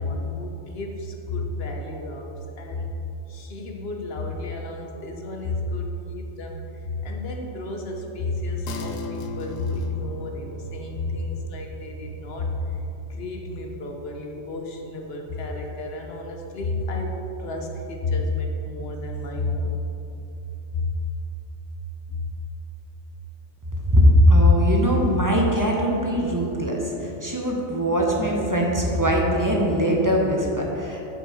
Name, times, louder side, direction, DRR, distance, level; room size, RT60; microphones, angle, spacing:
voice 1, 0.0-2.3 2.6-2.9 3.3-12.6 13.1-19.7 20.7-20.9 22.1-22.3, left 2 dB, 55° left, 2 dB, 0.9 m, -31 dB
sound 1, 8.7-18.4, left 4 dB, 90° left, 1.0 m, -41 dB
voice 2, 23.8-31.1, equal, 20° right, -2 dB, 0.7 m, -20 dB
7.6 x 5.7 x 4.1 m, 2.9 s
omnidirectional pair, 1.4 m